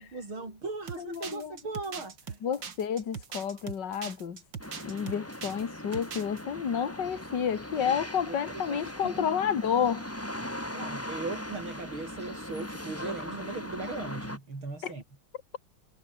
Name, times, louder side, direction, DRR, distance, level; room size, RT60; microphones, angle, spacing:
voice 1, 0.0-2.4 7.9-8.0 8.3-9.2 10.7-15.0, right 3 dB, 90° right, 6.7 m, -39 dB
sound 1, 0.9-5.6 5.9-6.4, right 6 dB, 65° right, 2.8 m, -41 dB
voice 2, 1.0-1.5 2.4-4.4 4.8-10.0 14.8-14.9, left 7 dB, 60° left, 2.6 m, -30 dB
sound 2, 4.6-14.4, left 1 dB, 5° left, 3.6 m, -39 dB
omnidirectional pair, 2.2 m